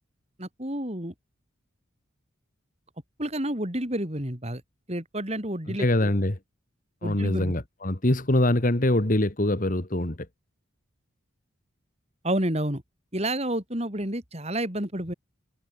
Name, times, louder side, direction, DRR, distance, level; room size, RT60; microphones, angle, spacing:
voice 1, 0.4-1.1 3.2-4.6 4.9-6.1 7.0-7.5 12.2-12.8 13.1-15.1, right 1 dB, 30° right, 4.2 m, -30 dB
voice 2, 5.7-6.4 7.0-10.3, left 1 dB, 40° left, 1.7 m, -24 dB
head